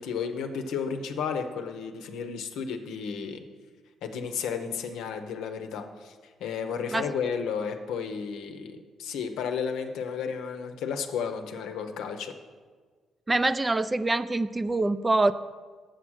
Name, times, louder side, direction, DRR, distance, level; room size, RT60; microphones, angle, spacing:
voice 1, 0.0-3.4 4.0-6.1 6.4-12.3, left 6 dB, 90° left, 6 dB, 0.7 m, -33 dB
voice 2, 13.3-15.3, right 2 dB, 20° right, 13 dB, 0.3 m, -25 dB
7.4 x 6.6 x 6.3 m, 1.5 s
cardioid pair, 90°, 0 cm